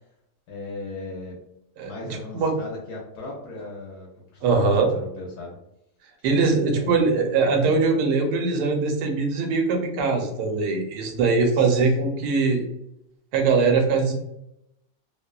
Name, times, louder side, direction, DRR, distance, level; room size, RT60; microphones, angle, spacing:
voice 1, 0.5-1.4 1.8-4.6 4.9-5.6 6.8-7.0 11.5-11.9, left 2 dB, 75° left, -2 dB, 1.1 m, -37 dB
voice 2, 1.8-2.6 4.4-4.9 6.2-12.6 13.3-14.1, right 4 dB, 80° right, 3 dB, 1.1 m, -22 dB
2.9 x 2.1 x 2.2 m, 0.82 s
omnidirectional pair, 1.8 m